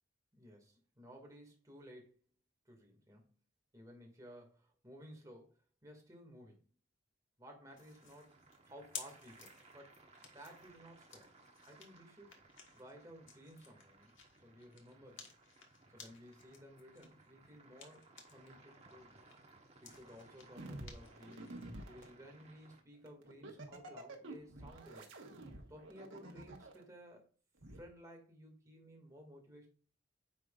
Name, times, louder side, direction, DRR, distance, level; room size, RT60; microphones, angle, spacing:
voice 1, 0.3-2.2 2.7-3.4 3.7-6.7 7.4-8.3 8.7-10.0 10.3-11.3 11.6-12.5 12.7-15.3 15.9-19.2 19.8-21.5 21.9-25.2 25.7-27.3 27.7-29.7, equal, 15° right, 2.2 m, -56 dB
sound 1, 7.7-22.8, right 3 dB, 35° right, 1.4 m, -63 dB
sound 2, 7.8-18.6 18.9-22.1, left 6 dB, 70° left, 1.6 m, -56 dB
sound 3, 20.6-22.1 23.1-26.8 27.6-27.8, right 2 dB, 75° right, 1.4 m, -49 dB
9.4 x 6.2 x 2.5 m
head